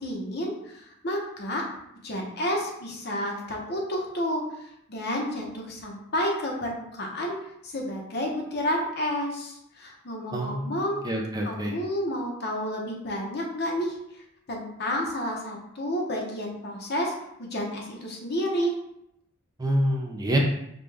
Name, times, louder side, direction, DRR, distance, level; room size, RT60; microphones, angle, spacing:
voice 1, 0.0-1.6 2.0-7.4 7.6-11.0 11.4-14.0 14.5-17.1 17.4-18.7, equal, 50° left, 0 dB, 0.9 m, -30 dB
voice 2, 10.3-11.7 19.6-20.4, right 1 dB, 20° right, 0 dB, 0.5 m, -27 dB
5.2 x 2.4 x 3.4 m, 0.78 s
head